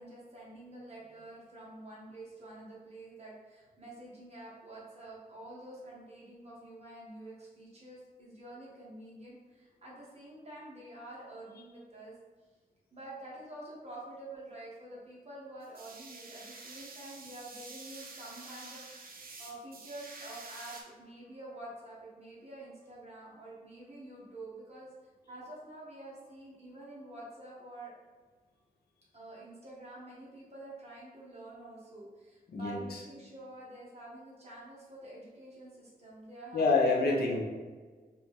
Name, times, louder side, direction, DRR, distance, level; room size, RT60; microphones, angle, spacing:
voice 1, 0.0-12.1 12.9-24.9 25.3-27.9 29.1-37.2, right 1 dB, 40° right, -6 dB, 1.4 m, -48 dB
sound 1, 15.6-20.8, right 3 dB, 65° right, 0.6 m, -48 dB
voice 2, 32.5-33.0 36.5-37.4, left 3 dB, 90° left, -2 dB, 0.7 m, -27 dB
4.4 x 2.5 x 3.6 m, 1.4 s
wide cardioid pair, 120°, 16 cm